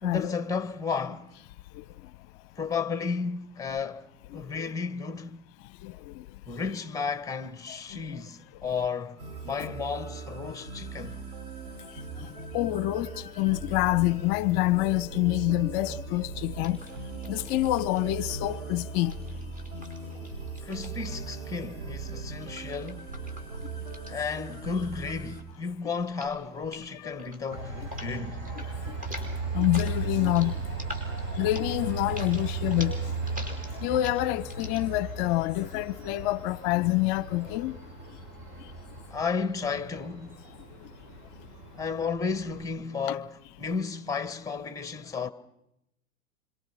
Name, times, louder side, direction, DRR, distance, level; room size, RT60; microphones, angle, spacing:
voice 1, 0.0-1.3 2.5-4.1 4.3-5.4 6.5-9.2 9.4-11.2 20.6-23.1 24.1-28.4 37.4-37.6 39.1-40.4 41.8-45.3, left 5 dB, 10° left, 1.5 m, -33 dB
voice 2, 4.3-4.7 5.8-6.2 7.9-8.2 9.6-9.7 12.5-16.8 17.3-19.1 23.9-24.1 27.2-27.3 28.9-29.0 29.5-30.6 31.3-33.0 33.8-37.8, left 17 dB, 40° left, 0.9 m, -27 dB
sound 1, 9.2-25.4, right 4 dB, 90° right, 6.3 m, -39 dB
sound 2, 16.6-18.1 19.0-21.5 22.4-24.9 25.2-25.6 26.0-26.4 26.6-26.9 27.2-28.1 28.4-28.7 28.9-34.8, left 1 dB, 20° right, 6.2 m, -45 dB
Train, 27.5-42.6, right 4 dB, 40° right, 7.2 m, -36 dB
27.0 x 26.0 x 5.7 m
hypercardioid pair, 110°, 42 cm